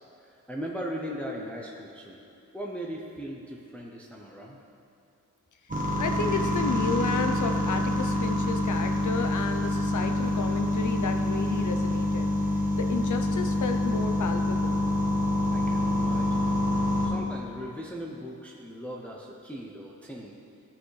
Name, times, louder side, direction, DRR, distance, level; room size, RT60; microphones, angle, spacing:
voice 1, 0.2-2.2 2.5-4.6 15.5-16.6 17.0-20.3, equal, 5° left, -2 dB, 0.6 m, -38 dB
sound 1, 5.7-17.1, left 1 dB, 25° right, 1.1 m, -26 dB
voice 2, 6.0-12.3 12.8-14.8, left 5 dB, 75° left, 5 dB, 0.6 m, -32 dB
14.0 x 5.7 x 3.2 m, 2.8 s
wide cardioid pair, 155°, 31 cm